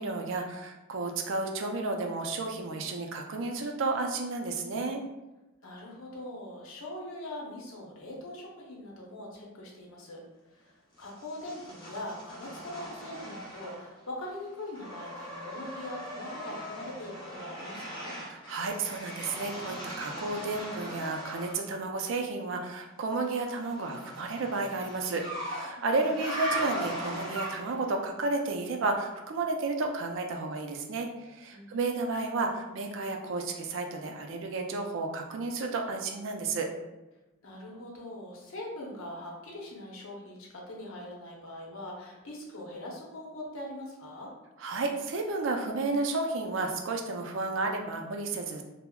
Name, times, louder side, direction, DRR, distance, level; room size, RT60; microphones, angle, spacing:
voice 1, 0.0-5.0 18.3-36.7 44.6-48.6, right 3 dB, 65° right, 3 dB, 0.4 m, -32 dB
voice 2, 5.6-10.2 10.5-18.2 25.7-26.0 31.5-32.0 37.4-44.3, left 1 dB, 75° left, -2 dB, 0.7 m, -42 dB
sound 1, 11.0-14.0 14.3-21.6 23.2-27.9, right 1 dB, 20° left, 0.6 m, -39 dB
3.5 x 2.0 x 2.2 m, 1.0 s
head